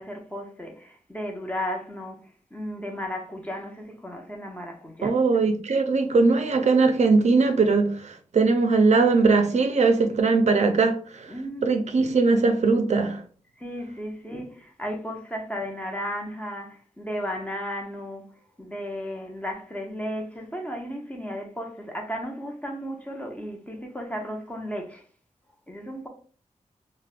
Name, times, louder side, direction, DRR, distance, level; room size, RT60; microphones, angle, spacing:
voice 1, 0.0-5.2 11.3-11.8 13.6-18.3 18.6-25.0 25.7-26.1, equal, 10° left, 0.6 m, -34 dB
voice 2, 5.0-11.3 11.6-13.2, right 4 dB, 60° right, 0.4 m, -20 dB
3.3 x 2.1 x 2.4 m
wide cardioid pair, 70°, 13 cm